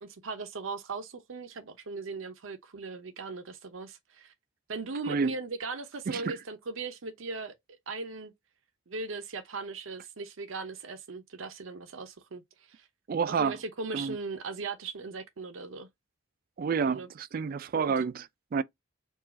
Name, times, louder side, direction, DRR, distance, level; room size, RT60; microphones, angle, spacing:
voice 1, 0.0-4.3 4.7-7.6 7.9-8.3 8.9-12.9 13.3-15.9 16.9-17.1 17.7-18.0, right 4 dB, 80° right, 0.7 m, -38 dB
voice 2, 6.1-6.4 13.1-13.6 13.9-14.2 16.6-18.6, right 5 dB, 45° right, 0.3 m, -29 dB
4.6 x 2.4 x 4.1 m
head